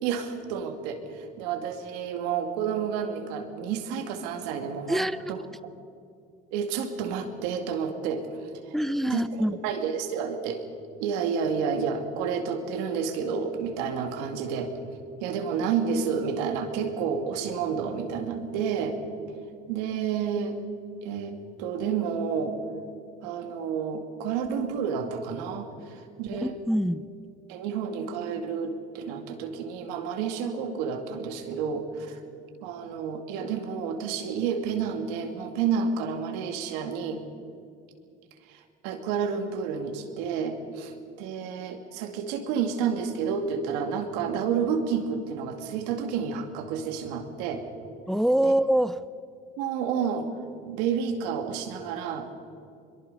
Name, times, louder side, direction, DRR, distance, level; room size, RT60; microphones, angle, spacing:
voice 1, 0.0-5.4 6.5-8.3 8.6-8.8 9.0-10.6 11.0-14.7 15.2-19.0 19.7-20.6 21.0-22.6 23.2-26.6 27.5-32.2 32.6-37.2 38.5-47.6 48.4-48.5 49.6-50.3 50.6-52.3, right 6 dB, 85° right, 6 dB, 2.2 m, -30 dB
voice 2, 4.9-5.3 8.7-9.5 26.3-27.0 48.1-49.0, right 1 dB, ahead, 14 dB, 0.5 m, -25 dB
23.0 x 22.5 x 5.5 m, 2.4 s
supercardioid pair, 90°, 20 cm